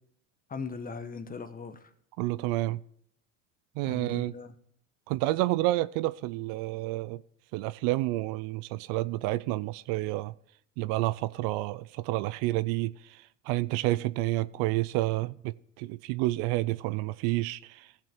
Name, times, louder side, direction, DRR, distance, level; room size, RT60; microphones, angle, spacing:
voice 1, 0.5-1.8 3.8-4.5, left 4 dB, 20° left, 1.1 m, -39 dB
voice 2, 2.2-2.8 3.8-4.3 5.1-7.2 7.5-10.3 10.8-17.9, right 18 dB, 60° right, 0.5 m, -29 dB
15.5 x 6.0 x 4.4 m
hypercardioid pair, 85°, 40 cm